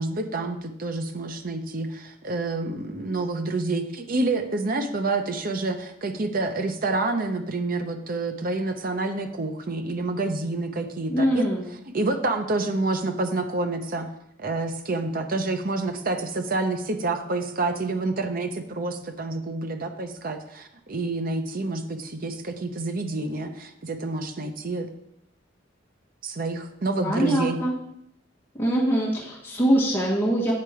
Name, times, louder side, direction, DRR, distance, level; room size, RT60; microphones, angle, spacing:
voice 1, 0.0-11.5 11.9-14.1 14.4-24.9 26.2-27.6, right 2 dB, 45° right, 6 dB, 0.7 m, -28 dB
voice 2, 11.1-11.7 27.0-27.7 28.6-30.5, right 1 dB, 10° left, -6 dB, 1.4 m, -23 dB
8.6 x 4.4 x 4.8 m, 0.76 s
head